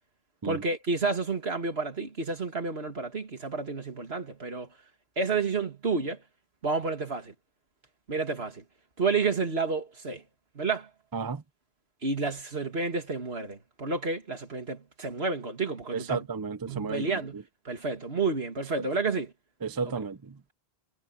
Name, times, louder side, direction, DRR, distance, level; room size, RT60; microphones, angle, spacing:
voice 1, 0.4-4.7 5.2-6.2 6.6-7.3 8.1-8.6 9.0-10.2 10.5-10.9 12.0-16.3 16.7-17.4 17.6-19.3 19.8-20.0, right 4 dB, 80° right, 2.7 m, -30 dB
voice 2, 15.9-17.1 19.6-20.3, right 5 dB, 25° right, 0.6 m, -32 dB
omnidirectional pair, 1.0 m